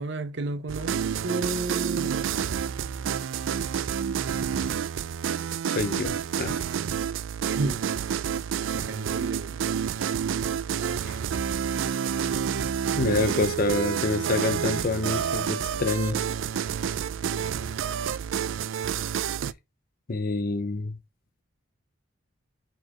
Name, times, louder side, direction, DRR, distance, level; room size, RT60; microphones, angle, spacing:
voice 1, 0.0-2.2 7.5-7.8 8.7-9.6, right 2 dB, 65° right, 0.7 m, -32 dB
sound 1, 0.7-19.5, right 8 dB, 90° right, 0.4 m, -29 dB
voice 2, 5.7-6.6 11.1-11.2 13.0-16.2 20.1-21.0, left 3 dB, 50° left, 0.7 m, -27 dB
4.6 x 4.6 x 4.3 m
head